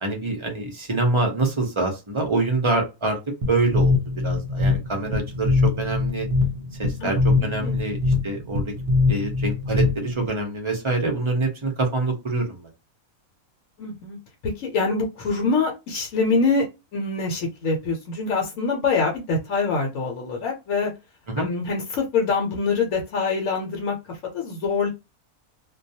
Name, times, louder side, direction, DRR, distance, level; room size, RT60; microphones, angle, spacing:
voice 1, 0.0-3.2 3.5-4.0 4.2-6.3 6.8-8.0 8.2-8.7 9.1-12.7 21.3-21.5, right 2 dB, 40° right, 2 dB, 0.4 m, -25 dB
sound 1, 3.4-10.3, left 3 dB, 55° right, 0.8 m, -23 dB
voice 2, 7.0-7.8 13.8-14.2 14.4-16.7 16.9-20.9 21.4-24.9, left 4 dB, 70° left, 0 dB, 1.0 m, -25 dB
2.2 x 2.2 x 2.7 m, 0.26 s
omnidirectional pair, 1.5 m